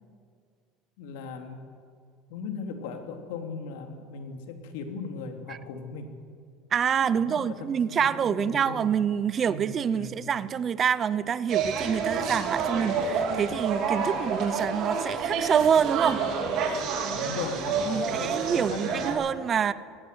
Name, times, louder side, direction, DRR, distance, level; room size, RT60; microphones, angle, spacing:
voice 1, 1.0-1.6 2.3-6.1 7.0-8.9 9.4-10.1 14.0-14.2 17.1-19.2, left 4 dB, 85° left, 5 dB, 2.6 m, -38 dB
voice 2, 6.7-16.2 17.8-19.7, right 7 dB, 30° right, 17 dB, 0.6 m, -26 dB
sound 1, 11.5-19.1, right 5 dB, 50° right, 3.8 m, -29 dB
20.0 x 17.0 x 7.9 m, 2.2 s
cardioid pair, 140°, 0 cm